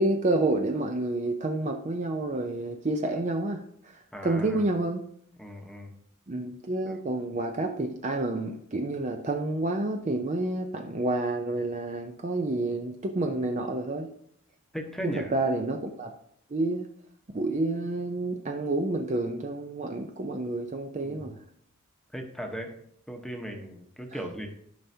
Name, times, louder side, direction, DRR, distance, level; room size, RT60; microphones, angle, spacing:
voice 1, 0.0-3.9 4.2-5.0 6.3-14.1 15.0-16.1 16.5-16.9 17.3-21.4, right 2 dB, 30° right, 4 dB, 0.5 m, -29 dB
voice 2, 4.1-4.6 5.4-5.9 6.8-6.9 14.7-15.3 21.0-21.2 22.1-22.8 23.1-24.5, equal, ahead, 2 dB, 1.0 m, -37 dB
12.5 x 5.6 x 2.8 m, 0.67 s
head